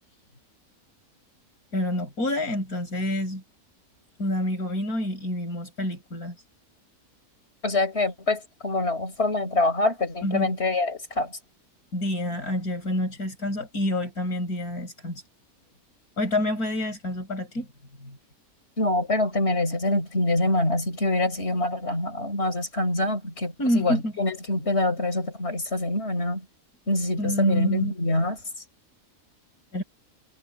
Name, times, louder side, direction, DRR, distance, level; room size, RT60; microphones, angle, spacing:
voice 1, 1.7-3.4 4.2-6.4 10.2-10.5 11.9-15.2 16.2-17.7 18.0-18.2 23.6-24.1 27.2-27.9 29.7-29.8, left 1 dB, 75° left, 7.9 m, -28 dB
voice 2, 7.6-11.4 18.8-26.4 26.9-28.4, left 2 dB, 45° left, 4.6 m, -25 dB
omnidirectional pair, 1.6 m